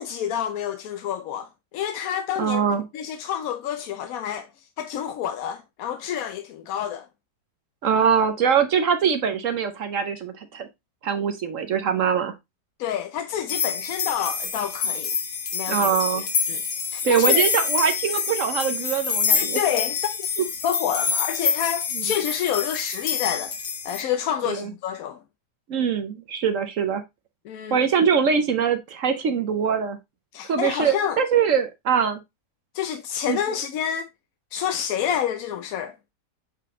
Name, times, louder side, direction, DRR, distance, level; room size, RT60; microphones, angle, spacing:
voice 1, 0.0-2.6 2.9-7.1 12.8-15.1 15.5-16.6 16.9-17.4 19.3-20.0 20.6-23.6 23.8-25.2 27.5-27.8 30.3-31.2 32.7-34.1 34.5-36.1, left 9 dB, 70° left, 1.0 m, -28 dB
voice 2, 2.4-2.8 7.8-10.7 11.0-12.3 15.7-16.2 17.0-19.6 21.9-22.0 24.4-24.7 25.7-27.0 27.7-30.0 30.5-32.2 33.3-33.4, right 7 dB, 60° right, 1.0 m, -23 dB
sound 1, 13.5-24.0, left 6 dB, 90° left, 2.2 m, -26 dB
7.5 x 3.9 x 3.6 m
omnidirectional pair, 1.8 m